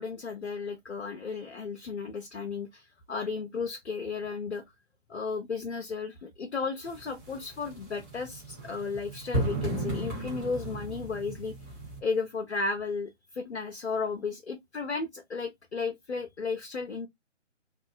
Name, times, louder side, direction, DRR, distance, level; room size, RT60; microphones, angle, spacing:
voice 1, 0.0-4.6 5.1-11.5 12.0-17.1, left 4 dB, 65° left, 0.6 m, -34 dB
sound 1, 6.8-12.0, right 1 dB, 15° right, 0.9 m, -35 dB
2.6 x 2.4 x 2.4 m
figure-of-eight pair, 140°, 37 cm